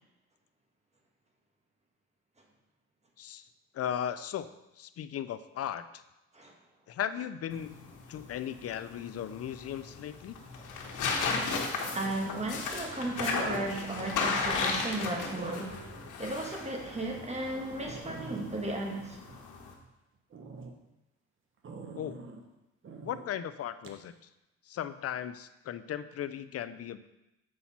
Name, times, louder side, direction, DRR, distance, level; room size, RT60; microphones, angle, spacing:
voice 1, 3.7-5.8 6.9-10.4 22.0-22.2 23.0-24.1 24.7-27.1, left 10 dB, 50° left, 13 dB, 0.5 m, -37 dB
sound 1, 7.5-19.7, left 4 dB, 80° left, 1.4 m, -35 dB
voice 2, 11.8-15.8 16.2-19.2, right 2 dB, 20° right, 1 dB, 1.6 m, -35 dB
sound 2, 15.4-16.1 16.6-16.7 17.2-17.3 17.5-17.6 17.8-19.9 20.3-20.7 21.6-22.4 22.8-23.3 23.8-24.0, right 4 dB, 40° right, 1.0 m, -45 dB
7.7 x 5.7 x 4.2 m, 0.94 s
cardioid pair, 90°, 30 cm